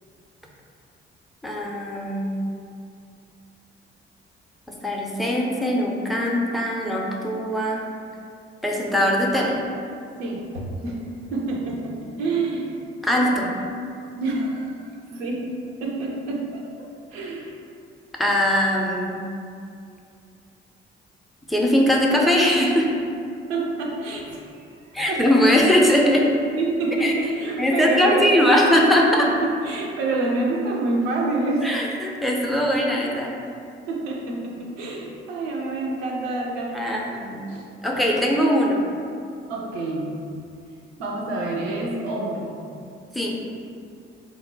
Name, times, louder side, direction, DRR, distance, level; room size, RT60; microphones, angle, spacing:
voice 1, 1.4-2.4 4.8-7.8 8.6-9.6 13.0-13.5 18.2-19.2 21.5-22.9 24.9-26.2 27.0-27.1 27.6-29.3 31.6-33.3 36.7-37.4 37.8-38.8 43.1-43.4, equal, ahead, -2 dB, 0.4 m, -20 dB
voice 2, 10.2-11.0 11.3-12.7 14.2-15.5 15.8-17.5 23.5-24.7 25.1-25.2 26.2-26.3 26.6-28.3 29.4-31.7 33.5-33.6 33.9-37.1 37.5-37.6 39.5-40.2 41.0-42.5, right 2 dB, 75° right, -2 dB, 0.5 m, -27 dB
2.8 x 2.1 x 3.8 m, 2.5 s
figure-of-eight pair, 40°, 30 cm